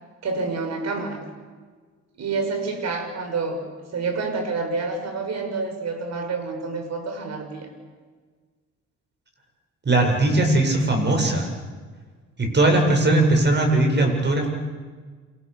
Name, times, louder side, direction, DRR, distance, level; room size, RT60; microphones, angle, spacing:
voice 1, 0.2-1.2 2.2-3.6 3.9-7.7, right 4 dB, 60° right, 6 dB, 6.8 m, -28 dB
voice 2, 9.8-11.5 12.4-14.5, right 2 dB, 35° right, 4 dB, 8.0 m, -19 dB
29.0 x 26.5 x 7.1 m, 1.5 s
cardioid pair, 90°, 30 cm